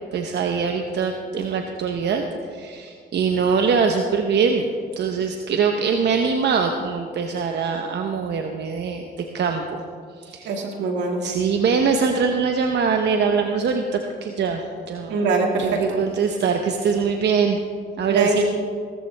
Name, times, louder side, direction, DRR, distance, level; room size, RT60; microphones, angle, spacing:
voice 1, 0.1-2.2 2.5-4.7 5.0-9.8 10.2-10.6 11.2-15.1 15.6-17.6 18.0-18.4, right 5 dB, 70° right, 4 dB, 1.0 m, -23 dB
voice 2, 10.4-11.2 15.1-16.0 18.1-18.4, right 3 dB, 90° right, 2 dB, 2.1 m, -23 dB
17.5 x 14.0 x 3.4 m, 2.2 s
cardioid pair, 65°, 18 cm